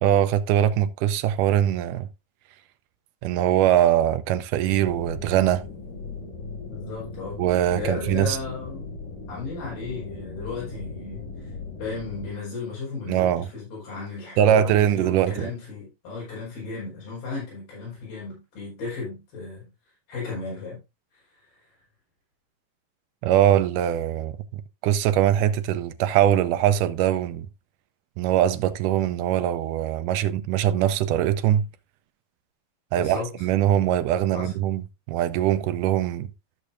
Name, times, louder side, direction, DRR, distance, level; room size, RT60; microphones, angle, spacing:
voice 1, 0.0-2.1 3.2-5.6 7.4-8.4 13.1-13.5 14.4-15.5 23.2-27.5 28.2-31.7 32.9-36.3, right 11 dB, 80° right, 2.0 m, -22 dB
sound 1, 4.6-12.3, left 3 dB, 35° left, 2.0 m, -38 dB
voice 2, 6.7-7.4 7.7-8.9 9.3-11.3 11.8-19.7 20.1-20.8 32.9-33.3 34.3-34.5, left 4 dB, 85° left, 6.8 m, -35 dB
13.5 x 6.6 x 2.6 m
omnidirectional pair, 4.1 m